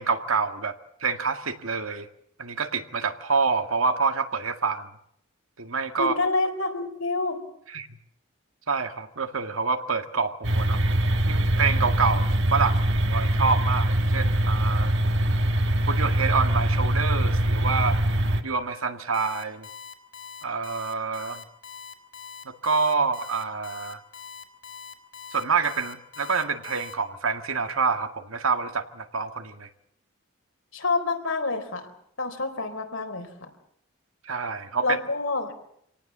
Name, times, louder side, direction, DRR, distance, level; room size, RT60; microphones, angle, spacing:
voice 1, 0.0-2.1 2.4-4.9 5.6-6.1 7.7-7.9 8.7-10.8 11.3-15.0 15.9-18.0 18.4-19.7 20.4-21.4 22.4-24.0 25.3-29.7 34.2-35.0, right 4 dB, 80° right, 7 dB, 2.0 m, -27 dB
voice 2, 6.0-7.4 30.7-31.9 32.2-33.5 34.8-35.5, left 3 dB, 75° left, 5 dB, 4.2 m, -27 dB
sound 1, 10.4-18.4, right 1 dB, 60° right, 1.7 m, -23 dB
Alarm, 19.1-26.9, left 6 dB, 55° left, 4.3 m, -42 dB
27.0 x 18.5 x 7.4 m, 0.72 s
head